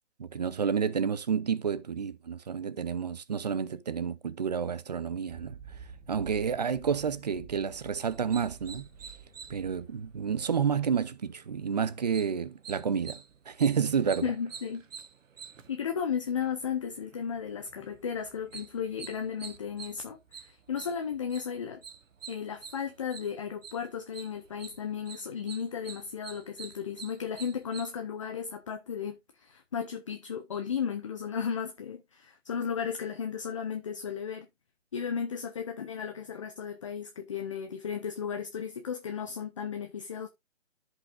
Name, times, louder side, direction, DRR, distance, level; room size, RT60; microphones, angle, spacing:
voice 1, 0.2-5.8 6.1-8.9 9.5-14.3, right 7 dB, 35° right, 0.5 m, -30 dB
sound 1, 5.3-11.0, right 6 dB, 10° right, 1.1 m, -50 dB
sound 2, 8.1-27.9, right 6 dB, 80° right, 1.2 m, -49 dB
voice 2, 14.2-14.8 15.7-21.8 22.3-34.5 34.9-40.3, left 7 dB, 25° left, 0.6 m, -35 dB
14.0 x 5.3 x 2.5 m
hypercardioid pair, 155°, 38 cm